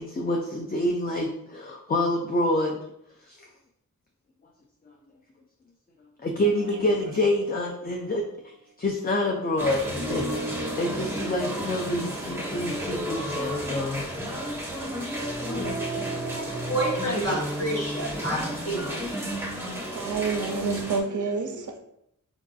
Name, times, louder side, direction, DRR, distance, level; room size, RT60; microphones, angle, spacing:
voice 1, 0.0-2.8 3.3-3.4 6.2-8.3 8.8-14.1, left 1 dB, 30° left, 0.4 m, -27 dB
sound 1, 6.4-8.0 10.0-13.1 15.5-16.9, right 2 dB, 90° left, 1.1 m, -37 dB
sound 2, 9.6-21.0, equal, 5° right, 0.8 m, -32 dB
voice 2, 16.3-19.1, right 1 dB, 45° left, 1.1 m, -29 dB
voice 3, 19.9-21.8, right 4 dB, 65° right, 0.4 m, -28 dB
4.7 x 2.5 x 2.3 m
wide cardioid pair, 60°, 34 cm